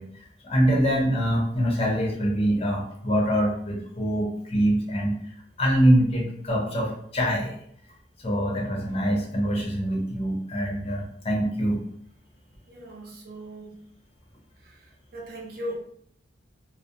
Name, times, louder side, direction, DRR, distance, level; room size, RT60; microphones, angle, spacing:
voice 1, 0.0-7.6 8.2-11.8, equal, 30° left, -1 dB, 0.5 m, -24 dB
voice 2, 12.7-13.8 14.6-14.8 15.1-15.8, equal, 50° right, -1 dB, 0.6 m, -38 dB
2.4 x 2.0 x 2.6 m, 0.67 s
head